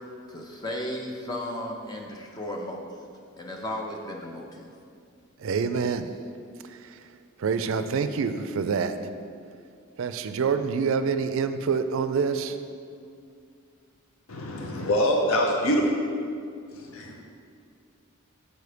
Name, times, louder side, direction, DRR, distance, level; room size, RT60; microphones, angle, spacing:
voice 1, 0.3-2.8 3.4-4.7, left 1 dB, 20° left, 0 dB, 0.5 m, -35 dB
voice 2, 5.4-6.1 6.7-7.0 7.4-9.0 10.0-12.6, right 5 dB, 65° right, 10 dB, 0.4 m, -26 dB
voice 3, 14.3-15.8 16.7-17.2, equal, 75° left, 1 dB, 0.7 m, -25 dB
6.9 x 4.3 x 4.9 m, 2.3 s
head